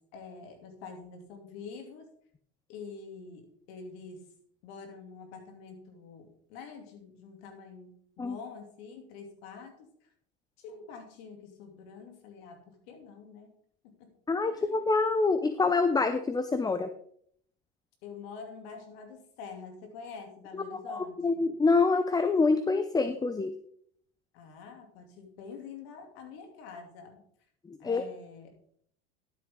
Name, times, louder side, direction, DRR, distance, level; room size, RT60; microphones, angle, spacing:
voice 1, 0.0-2.1 2.7-4.3 4.6-9.9 10.6-13.6 13.8-14.1 14.5-14.8 18.0-21.5 24.3-27.2 27.8-28.5, left 5 dB, 70° left, 4 dB, 2.9 m, -46 dB
voice 2, 14.3-16.9 20.9-23.5 27.7-28.0, left 3 dB, 10° left, 10 dB, 0.6 m, -26 dB
12.5 x 8.0 x 3.8 m, 0.64 s
supercardioid pair, 100°, 32 cm